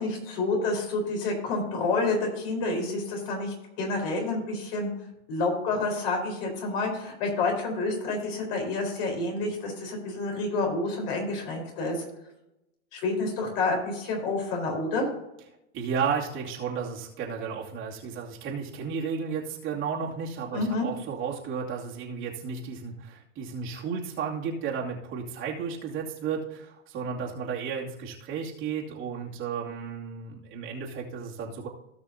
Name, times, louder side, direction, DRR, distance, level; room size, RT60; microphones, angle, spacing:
voice 1, 0.0-4.9 5.3-12.0 12.9-15.1 20.5-20.9, left 3 dB, 50° left, 1 dB, 4.1 m, -29 dB
voice 2, 15.7-31.7, right 6 dB, 35° right, -3 dB, 2.5 m, -33 dB
17.5 x 6.1 x 2.8 m, 0.88 s
hypercardioid pair, 105°, 36 cm